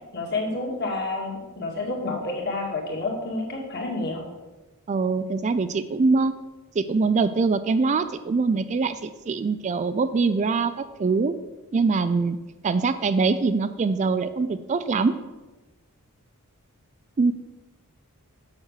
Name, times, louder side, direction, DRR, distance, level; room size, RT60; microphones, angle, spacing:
voice 1, 0.1-4.3, left 2 dB, 45° left, -2 dB, 2.1 m, -29 dB
voice 2, 4.9-6.3 6.8-11.3 11.7-12.4 12.6-15.1 17.2-17.3, right 4 dB, 30° right, 12 dB, 0.3 m, -23 dB
7.4 x 6.2 x 6.5 m, 1.1 s
head